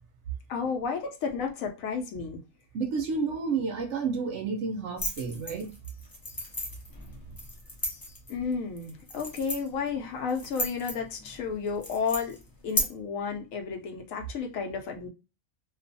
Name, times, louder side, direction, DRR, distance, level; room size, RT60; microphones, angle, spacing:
voice 1, 0.5-2.4 8.3-12.4 12.6-15.1, left 5 dB, 75° left, 1.0 m, -32 dB
voice 2, 2.7-5.7, right 5 dB, 65° right, 0.8 m, -30 dB
sound 1, 5.0-12.8, left 1 dB, 35° left, 0.3 m, -36 dB
2.4 x 2.3 x 2.6 m
omnidirectional pair, 1.4 m